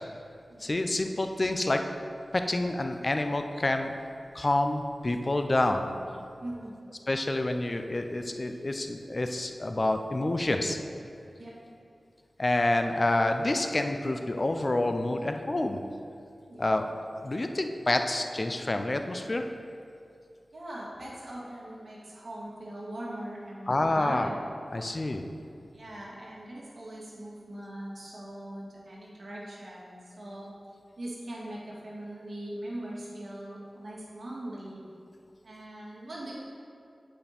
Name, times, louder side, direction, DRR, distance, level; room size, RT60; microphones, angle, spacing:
voice 1, 0.6-1.8 2.3-3.9 4.3-5.9 7.1-10.8 12.4-15.8 16.6-19.4 23.7-24.3 24.7-25.2, left 2 dB, 40° left, 6 dB, 0.5 m, -28 dB
voice 2, 6.4-6.8 11.4-11.5 16.5-16.7 20.5-24.4 25.7-30.5 31.0-34.8 35.4-36.3, right 1 dB, 75° right, -6 dB, 1.8 m, -41 dB
8.2 x 5.3 x 4.2 m, 2.5 s
wide cardioid pair, 55°, 0 cm